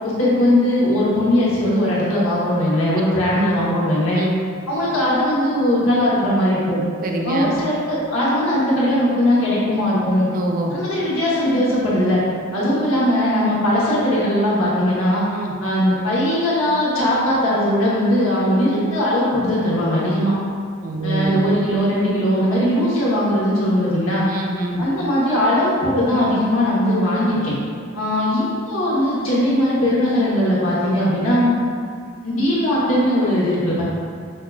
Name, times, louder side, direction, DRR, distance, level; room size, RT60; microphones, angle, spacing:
voice 1, 0.0-4.2 4.7-6.8 7.2-10.3 10.7-12.2 12.5-15.2 15.6-20.3 21.0-24.2 24.8-27.5 27.9-31.5 32.2-33.8, left 1 dB, 75° left, -7 dB, 1.0 m, -19 dB
voice 2, 7.0-7.6 10.3-10.8 15.3-15.5 20.8-21.5 24.3-24.8, right 2 dB, 40° right, 1 dB, 0.3 m, -25 dB
5.4 x 2.2 x 2.3 m, 2.2 s
head